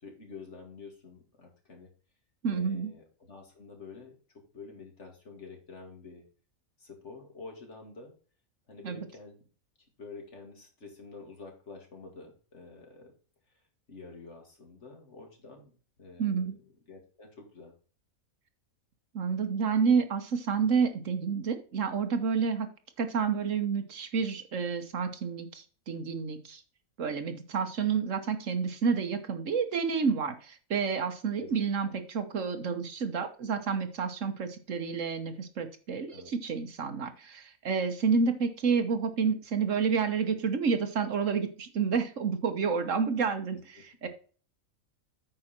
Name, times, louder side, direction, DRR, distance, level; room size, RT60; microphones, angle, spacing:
voice 1, 0.0-1.9 2.5-6.3 6.8-8.1 8.7-9.4 10.0-13.1 13.5-13.6 13.9-16.5 16.9-17.7 31.4-31.9 36.1-36.3, left 4 dB, 55° left, 2 dB, 2.5 m, -48 dB
voice 2, 2.4-2.9 8.8-9.1 16.2-16.6 19.1-22.7 23.0-26.6 27.0-44.1, right 5 dB, 65° right, 8 dB, 1.4 m, -29 dB
8.9 x 5.6 x 4.3 m, 0.39 s
omnidirectional pair, 1.5 m